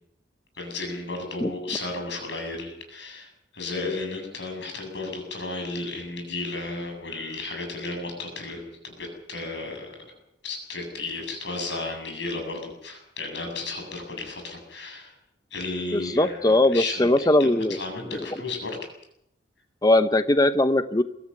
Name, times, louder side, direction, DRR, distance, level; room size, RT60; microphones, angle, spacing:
voice 1, 0.6-10.1 10.4-15.1 15.5-17.1 17.4-18.7, left 3 dB, 65° left, 4 dB, 7.9 m, -33 dB
voice 2, 15.9-17.8 18.1-18.4 19.8-21.0, left 1 dB, 20° left, 11 dB, 0.8 m, -20 dB
23.5 x 14.0 x 9.7 m, 0.79 s
head